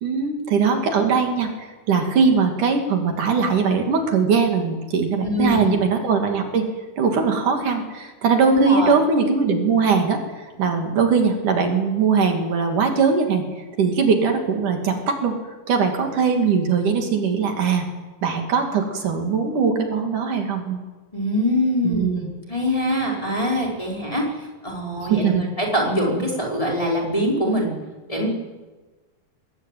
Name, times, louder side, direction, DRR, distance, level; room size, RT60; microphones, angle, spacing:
voice 1, 0.0-6.7 7.0-13.4 13.8-15.4 15.7-17.9 18.2-20.8 21.8-22.3 25.1-25.5, right 5 dB, 65° right, 4 dB, 3.9 m, -20 dB
voice 2, 5.2-5.8 8.5-8.9 21.1-24.3 24.6-25.3 25.6-27.7 28.1-28.3, equal, 10° left, -2 dB, 4.2 m, -23 dB
23.0 x 19.0 x 9.2 m, 1.2 s
omnidirectional pair, 4.0 m